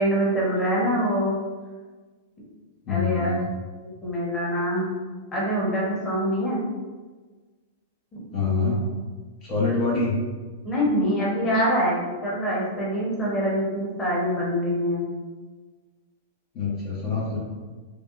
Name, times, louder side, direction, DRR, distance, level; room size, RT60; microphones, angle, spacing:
voice 1, 0.0-1.3 2.9-3.3 4.0-4.9 5.3-6.6 8.1-8.7 10.6-15.0, equal, 20° left, -6 dB, 1.2 m, -25 dB
voice 2, 2.8-3.4 8.3-8.8 9.4-10.3 16.5-17.4, left 4 dB, 45° left, -6 dB, 0.9 m, -25 dB
3.4 x 2.2 x 2.5 m, 1.4 s
hypercardioid pair, 115°, 0 cm